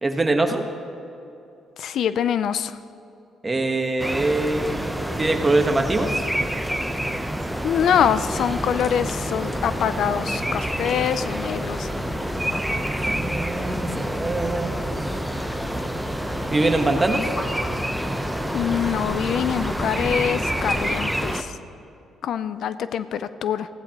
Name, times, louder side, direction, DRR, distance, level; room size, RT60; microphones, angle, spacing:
voice 1, 0.0-0.6 3.4-4.8 5.2-6.2 12.9-15.1 16.5-17.3, right 2 dB, 20° right, 5 dB, 1.2 m, -23 dB
voice 2, 1.8-2.8 7.6-11.9 18.5-21.6 22.2-23.7, left 8 dB, 70° left, 13 dB, 0.4 m, -24 dB
sound 1, 4.0-21.4, equal, ahead, 0.8 m, -28 dB
sound 2, 8.0-20.9, left 1 dB, 15° left, 1.4 m, -35 dB
15.5 x 15.0 x 3.0 m, 2.7 s
cardioid pair, 90°, 0 cm